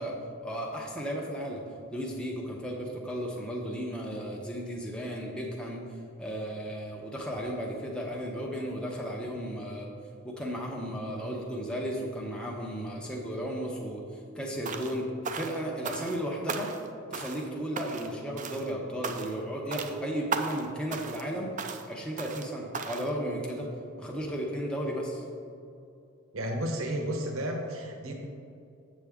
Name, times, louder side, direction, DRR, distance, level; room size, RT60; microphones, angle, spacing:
voice 1, 0.0-1.6 1.9-5.9 6.2-9.9 10.2-14.0 14.3-16.7 17.1-21.5 21.9-23.7 24.0-25.2, equal, 5° left, -2 dB, 0.7 m, -34 dB
sound 1, 14.6-15.0 15.2-16.2 16.5-16.9 17.1-17.5 17.8-18.1 18.4-18.7 19.0-19.4 19.7-20.0 20.3-20.6 20.9-21.3 21.6-21.9 22.2-22.5 22.7-23.1, right 4 dB, 35° right, 0.4 m, -36 dB
voice 2, 26.3-28.1, right 1 dB, 65° right, 2 dB, 0.9 m, -32 dB
7.6 x 7.2 x 3.6 m, 2.5 s
head